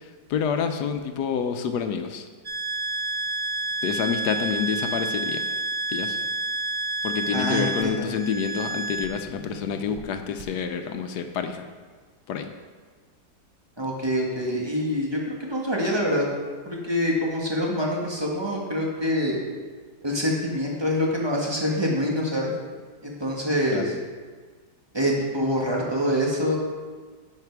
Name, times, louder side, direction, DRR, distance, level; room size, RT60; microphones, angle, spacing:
voice 1, 0.3-2.3 3.8-5.4 5.9-6.2 7.0-11.6 12.3-12.5 23.7-23.9, left 6 dB, 75° left, 7 dB, 1.2 m, -28 dB
sound 1, 2.4-10.0 10.4-10.5, right 2 dB, 50° right, 0.4 m, -30 dB
voice 2, 7.3-8.0 13.8-16.2 16.6-19.4 20.0-22.5 23.0-23.8 24.9-26.6, equal, 15° right, -2 dB, 1.5 m, -25 dB
10.5 x 5.4 x 4.6 m, 1.5 s
omnidirectional pair, 1.8 m